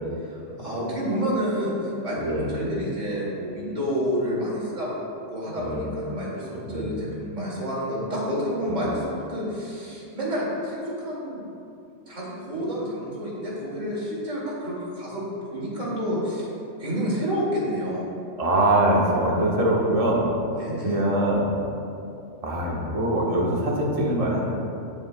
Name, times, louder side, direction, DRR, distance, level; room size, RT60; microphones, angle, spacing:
voice 1, 0.2-2.2 2.5-11.4 12.1-16.5 16.8-18.0 20.5-21.0, equal, 90° right, -6 dB, 2.8 m, -29 dB
voice 2, 18.4-20.2 20.8-21.5 22.4-24.4, right 1 dB, 30° right, -3 dB, 1.2 m, -23 dB
18.0 x 7.0 x 2.2 m, 2.6 s
omnidirectional pair, 1.3 m